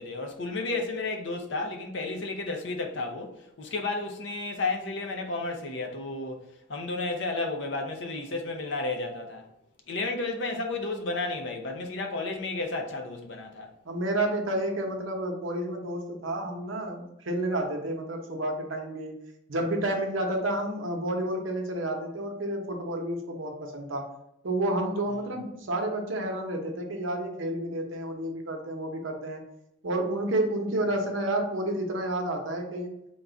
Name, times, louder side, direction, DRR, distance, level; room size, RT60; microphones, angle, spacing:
voice 1, 0.0-9.4 9.9-13.7, left 3 dB, 65° left, 0.6 m, -32 dB
voice 2, 13.8-19.1 19.5-24.1 24.4-29.4 29.8-32.9, right 1 dB, 80° right, 0.8 m, -30 dB
3.8 x 2.3 x 3.8 m
head